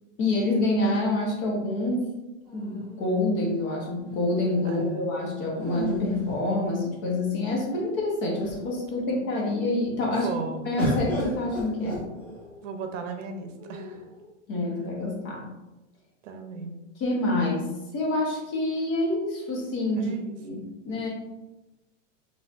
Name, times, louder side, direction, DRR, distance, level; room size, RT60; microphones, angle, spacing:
voice 1, 0.2-2.1 2.5-10.3 10.7-12.0 14.5-15.5 17.0-20.1 20.4-21.1, left 2 dB, 30° left, -2 dB, 1.0 m, -27 dB
sound 1, 2.4-3.6 5.5-7.1 7.8-7.9 8.2-8.8 10.8-12.6 13.6-14.3, equal, 5° left, 1.3 m, -34 dB
voice 2, 4.6-5.1 9.0-9.1 10.1-10.6 12.6-14.0 16.2-16.7 20.0-20.3, right 5 dB, 75° right, 6 dB, 0.7 m, -36 dB
4.5 x 3.4 x 2.4 m, 1.1 s
supercardioid pair, 155°, 38 cm